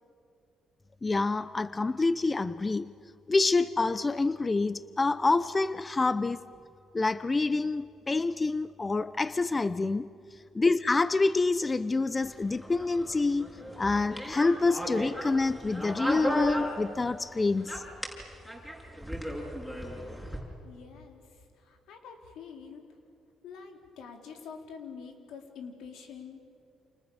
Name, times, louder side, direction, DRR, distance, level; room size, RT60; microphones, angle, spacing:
voice 1, 1.0-2.9 3.3-6.4 6.9-10.1 10.5-13.5 13.8-17.8, left 3 dB, 25° left, 0.7 m, -27 dB
sound 1, 12.2-17.3 17.6-20.4, equal, 5° left, 6.9 m, -36 dB
voice 2, 20.6-22.8 23.4-26.4, left 6 dB, 85° left, 4.1 m, -46 dB
29.0 x 29.0 x 7.1 m
cardioid pair, 90°, 0 cm